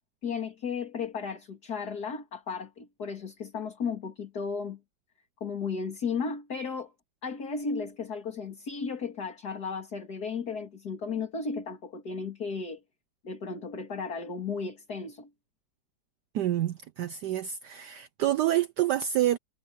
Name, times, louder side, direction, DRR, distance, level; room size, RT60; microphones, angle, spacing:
voice 1, 0.2-4.8 5.4-6.9 7.2-12.8 13.2-15.3, left 5 dB, 50° left, 3.0 m, -34 dB
voice 2, 16.3-19.4, right 12 dB, 70° right, 1.1 m, -27 dB
omnidirectional pair, 2.2 m